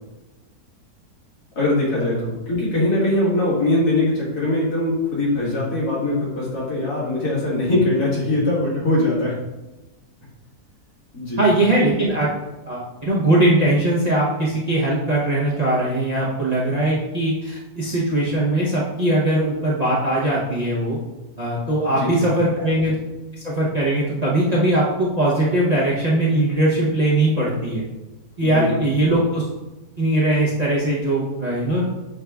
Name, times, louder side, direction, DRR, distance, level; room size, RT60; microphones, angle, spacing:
voice 1, 1.6-9.4 11.1-11.4 21.9-22.3 28.4-28.8, left 2 dB, 85° left, -7 dB, 2.3 m, -21 dB
voice 2, 11.4-12.3 12.7-21.0 21.4-23.0 23.4-27.8 28.4-29.4 30.0-31.8, right 1 dB, 35° right, -7 dB, 0.7 m, -20 dB
6.3 x 2.3 x 3.3 m, 1.1 s
omnidirectional pair, 1.6 m